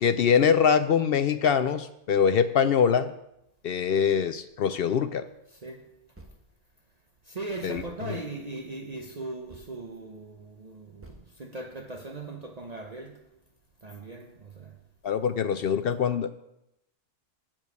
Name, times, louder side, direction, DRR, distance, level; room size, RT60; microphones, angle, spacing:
voice 1, 0.0-3.1 3.6-5.2 7.6-8.2 15.0-16.3, left 7 dB, 60° left, 0.6 m, -23 dB
voice 2, 5.5-5.9 7.2-13.3 13.8-14.8, right 2 dB, 35° right, 0.8 m, -39 dB
sound 1, 6.2-6.6 7.0-7.1 7.7-8.2 9.5-9.7 11.0-11.3, right 2 dB, 10° right, 1.4 m, -49 dB
7.6 x 7.2 x 8.0 m
omnidirectional pair, 1.3 m